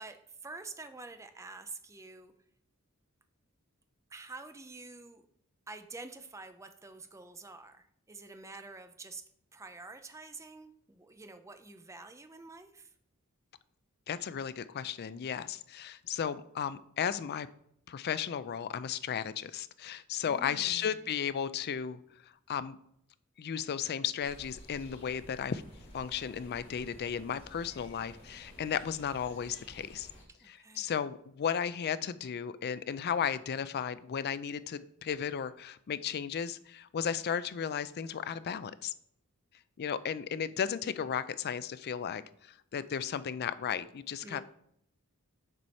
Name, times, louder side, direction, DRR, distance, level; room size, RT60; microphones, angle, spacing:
voice 1, 0.0-2.3 4.1-5.2 5.7-9.2 9.5-12.9 20.3-21.2 30.3-30.9 44.2-44.4, right 3 dB, 15° right, 9 dB, 0.5 m, -48 dB
voice 2, 14.1-17.5 17.9-22.0 22.5-22.8 23.4-25.6 25.9-30.1 30.5-38.9 39.8-44.4, left 8 dB, 45° left, 15 dB, 0.4 m, -35 dB
sound 1, 24.2-30.2, equal, 30° left, 2.5 m, -53 dB
6.8 x 4.8 x 4.3 m, 0.71 s
head